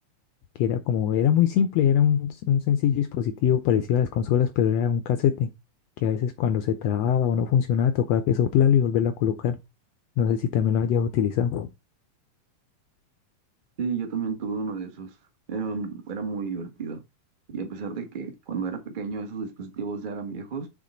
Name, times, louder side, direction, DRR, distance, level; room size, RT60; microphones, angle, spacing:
voice 1, 0.6-5.5 6.0-9.6 10.2-11.7, left 9 dB, 90° left, 1.4 m, -22 dB
voice 2, 13.8-15.1 15.5-17.0 17.5-20.7, right 5 dB, 55° right, 0.5 m, -32 dB
7.5 x 3.8 x 5.3 m
omnidirectional pair, 3.7 m